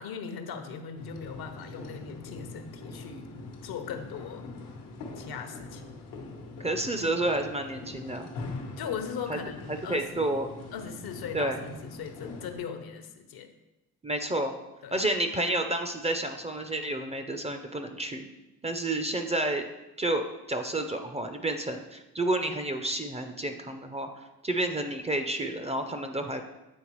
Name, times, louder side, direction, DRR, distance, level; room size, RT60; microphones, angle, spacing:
voice 1, 0.0-3.3 3.6-4.5 5.2-5.9 8.8-10.4 10.7-13.5 14.8-15.1, left 6 dB, 70° left, 7 dB, 0.7 m, -39 dB
sound 1, 1.0-12.6, left 3 dB, 90° left, 1.0 m, -43 dB
voice 2, 6.6-8.3 9.3-9.4 9.7-10.5 11.3-11.6 14.0-14.5 14.9-18.3 18.6-19.6 20.0-26.4, right 1 dB, 15° right, 6 dB, 0.4 m, -30 dB
8.6 x 3.6 x 3.0 m, 1.0 s
cardioid pair, 85°, 38 cm